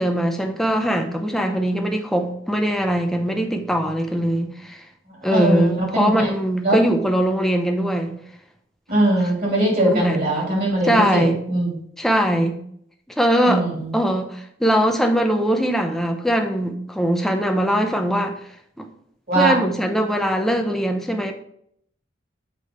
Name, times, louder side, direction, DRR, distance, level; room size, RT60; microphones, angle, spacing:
voice 1, 0.0-4.8 5.2-8.2 9.8-10.2 10.8-11.4 12.0-12.6 13.2-13.7 13.9-18.4 18.8-18.9 19.3-21.3, equal, ahead, 4 dB, 0.6 m, -21 dB
voice 2, 5.3-6.3 6.6-6.8 8.9-11.8 13.5-13.9 19.3-19.5, right 1 dB, 50° right, -3 dB, 2.9 m, -21 dB
6.7 x 4.9 x 4.2 m, 0.69 s
head